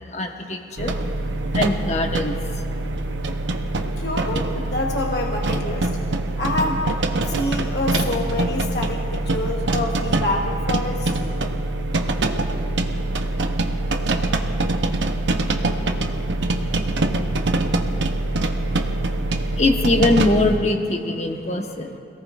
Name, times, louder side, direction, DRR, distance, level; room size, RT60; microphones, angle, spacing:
voice 1, 0.1-0.9 1.5-2.4 18.4-18.5 19.5-22.0, left 2 dB, 40° left, 3 dB, 1.2 m, -22 dB
sound 1, 0.8-20.6, right 2 dB, 85° right, 0.9 m, -24 dB
voice 2, 4.0-5.9 6.4-11.1, left 2 dB, 60° left, 0 dB, 1.2 m, -27 dB
26.5 x 18.0 x 2.5 m, 2.9 s
head